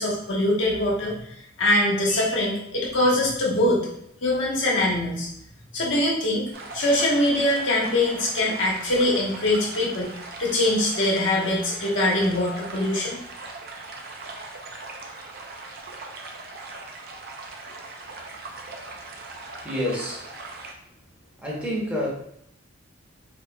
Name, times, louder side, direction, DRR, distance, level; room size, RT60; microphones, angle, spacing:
voice 1, 0.0-3.8 4.2-5.3 5.7-6.4 6.7-10.1 10.4-13.2, left 1 dB, 70° left, -4 dB, 1.1 m, -23 dB
sound 1, 6.5-20.7, right 3 dB, 50° right, 0.5 m, -40 dB
voice 2, 19.6-20.3 21.4-22.1, left 1 dB, 5° right, -5 dB, 0.9 m, -28 dB
4.3 x 2.9 x 2.2 m, 0.71 s
head